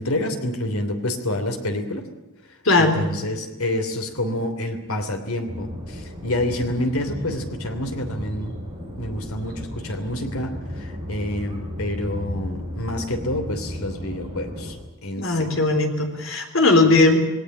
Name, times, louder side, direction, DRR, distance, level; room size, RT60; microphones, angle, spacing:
voice 1, 0.0-2.0 2.8-8.5 9.0-14.8 15.0-15.5, left 1 dB, 85° left, 7 dB, 3.0 m, -28 dB
voice 2, 2.7-3.0 15.2-17.2, left 3 dB, 65° left, 5 dB, 3.6 m, -18 dB
sound 1, 5.5-14.8, equal, 20° right, 5.3 m, -34 dB
20.0 x 17.5 x 10.0 m, 1.0 s
head